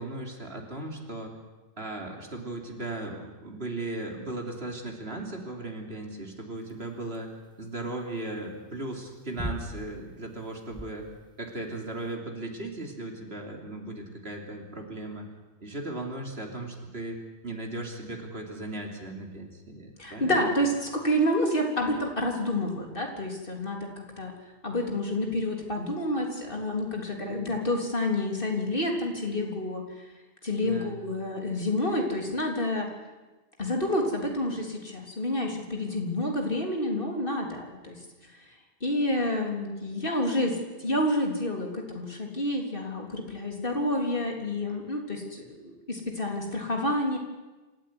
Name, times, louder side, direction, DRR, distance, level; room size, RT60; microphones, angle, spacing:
voice 1, 0.0-1.3 1.8-7.3 7.6-11.1 11.4-15.3 15.6-20.5 30.6-31.0, right 2 dB, 65° right, 2 dB, 3.7 m, -37 dB
sound 1, 6.6-12.2, equal, 5° left, 2.3 m, -42 dB
voice 2, 20.0-24.3 24.6-29.8 30.4-32.9 33.6-38.0 38.8-47.2, left 1 dB, 50° left, 1 dB, 3.8 m, -29 dB
26.5 x 14.5 x 9.7 m, 1.2 s
omnidirectional pair, 1.1 m